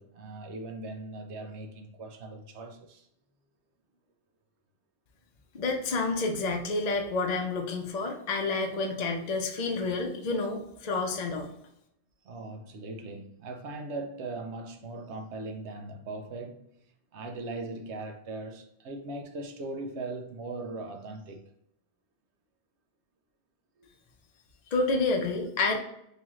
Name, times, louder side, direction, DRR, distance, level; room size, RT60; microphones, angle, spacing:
voice 1, 0.0-3.1 12.2-16.7 17.1-21.4 23.8-23.9, right 2 dB, 85° right, 1.0 m, -39 dB
voice 2, 5.5-11.5 24.7-25.8, left 3 dB, 45° left, 0.6 m, -29 dB
3.1 x 3.0 x 3.6 m
omnidirectional pair, 1.1 m